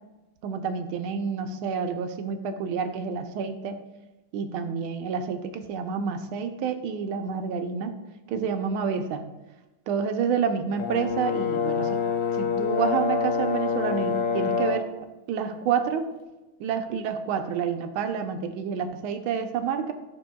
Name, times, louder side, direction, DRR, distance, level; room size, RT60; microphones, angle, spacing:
voice 1, 0.4-3.8 4.3-7.9 8.3-9.3 9.9-12.0 12.4-14.8 15.3-16.1 16.6-19.9, right 6 dB, 80° right, 7 dB, 1.5 m, -28 dB
Brass instrument, 10.8-14.9, left 5 dB, 70° left, 1.1 m, -26 dB
10.5 x 6.2 x 2.2 m, 1.1 s
omnidirectional pair, 2.4 m